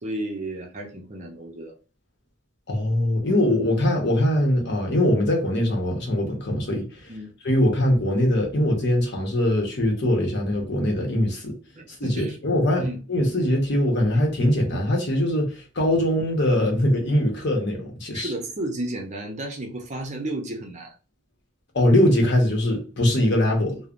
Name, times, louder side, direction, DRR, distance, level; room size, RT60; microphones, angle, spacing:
voice 1, 0.0-1.7 7.1-7.3 11.8-12.4 12.8-13.0 18.1-20.9, right 1 dB, 35° right, 0.6 m, -32 dB
voice 2, 2.7-6.9 7.4-11.5 12.0-18.3 21.7-23.8, left 1 dB, 55° left, 0.9 m, -22 dB
3.1 x 2.1 x 2.4 m
head